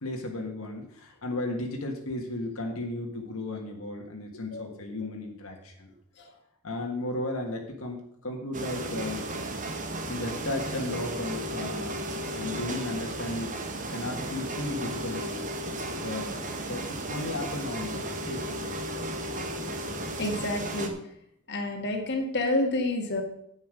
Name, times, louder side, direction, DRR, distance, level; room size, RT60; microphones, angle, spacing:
voice 1, 0.0-5.9 6.6-9.2 10.1-12.0 12.2-13.6 13.9-15.4 16.0-18.8, left 1 dB, 65° left, 1 dB, 1.6 m, -35 dB
sound 1, 8.5-20.9, right 1 dB, 35° right, 1.2 m, -34 dB
voice 2, 20.2-20.9 21.5-23.2, left 2 dB, 50° left, 2 dB, 1.7 m, -28 dB
9.7 x 8.5 x 5.1 m, 0.72 s
head